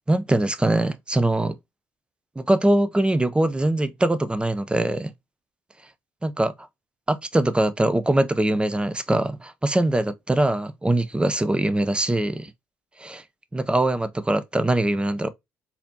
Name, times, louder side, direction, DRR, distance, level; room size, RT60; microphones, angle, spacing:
voice 1, 0.1-1.5 2.4-5.1 6.2-6.5 7.1-12.5 13.0-13.2 13.5-15.3, right 1 dB, 10° right, 0.6 m, -22 dB
4.1 x 2.8 x 2.8 m
hypercardioid pair, 50°, 8 cm